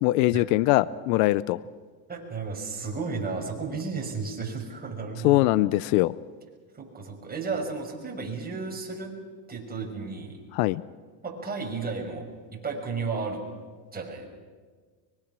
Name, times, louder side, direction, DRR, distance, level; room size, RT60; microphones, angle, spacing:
voice 1, 0.0-1.6 5.2-6.1 10.5-10.8, left 18 dB, 75° left, 19 dB, 0.7 m, -22 dB
voice 2, 2.1-5.4 6.7-9.1 9.5-10.4 11.2-12.2 12.5-13.4 13.9-14.3, right 4 dB, 20° right, 0 dB, 5.8 m, -33 dB
24.5 x 22.5 x 6.2 m, 1.5 s
supercardioid pair, 115°, 49 cm